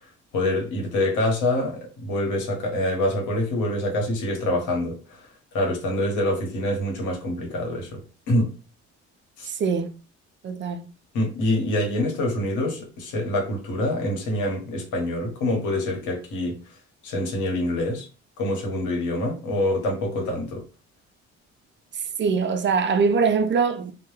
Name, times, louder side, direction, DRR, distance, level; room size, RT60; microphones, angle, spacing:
voice 1, 0.3-5.3 5.5-8.0 8.3-8.5 9.4-9.5 11.1-16.6 17.0-18.1 18.4-20.6, left 1 dB, 90° left, 1.0 m, -25 dB
voice 2, 9.5-9.9 10.4-10.9 21.9-23.9, right 5 dB, 40° right, 0.4 m, -23 dB
2.1 x 2.1 x 3.1 m
cardioid pair, 90°, 30 cm